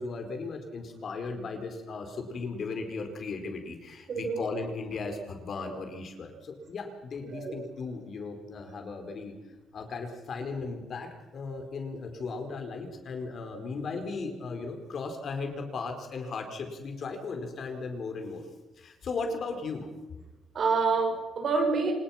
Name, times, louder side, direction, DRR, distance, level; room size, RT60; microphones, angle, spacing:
voice 1, 0.0-9.3 9.7-18.4 18.8-19.9, left 4 dB, 55° left, 5 dB, 4.7 m, -36 dB
voice 2, 4.1-4.4 7.3-7.6 20.5-21.9, right 4 dB, 55° right, 3 dB, 6.4 m, -27 dB
26.5 x 20.0 x 6.0 m, 1.1 s
cardioid pair, 90°, 0 cm